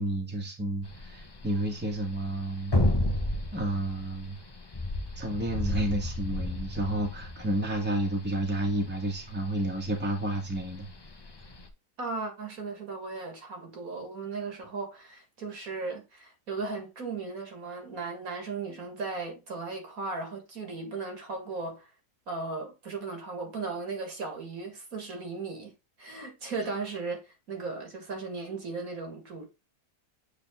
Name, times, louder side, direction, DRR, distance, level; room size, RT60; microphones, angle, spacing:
voice 1, 0.0-2.8 3.5-4.4 5.2-10.9, right 1 dB, 5° right, 1.5 m, -31 dB
sound 1, 0.8-11.7, left 1 dB, 25° left, 0.6 m, -32 dB
voice 2, 12.0-21.9 22.3-25.7 26.0-29.5, right 4 dB, 60° right, 2.2 m, -36 dB
7.8 x 4.0 x 3.6 m
omnidirectional pair, 1.7 m